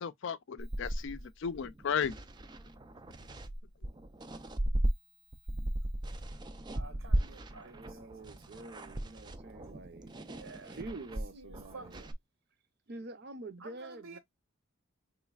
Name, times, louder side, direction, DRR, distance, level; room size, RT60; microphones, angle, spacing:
voice 1, 0.0-2.1, left 7 dB, 55° left, 0.4 m, -35 dB
sound 1, 0.6-4.9 5.3-12.1, right 1 dB, 20° right, 0.3 m, -37 dB
voice 2, 6.7-8.7 10.2-10.8 11.3-12.1 13.6-14.2, right 3 dB, 70° right, 1.0 m, -52 dB
voice 3, 7.6-10.2 10.6-12.1 12.9-14.2, right 2 dB, 50° right, 0.7 m, -47 dB
4.0 x 3.1 x 2.3 m
head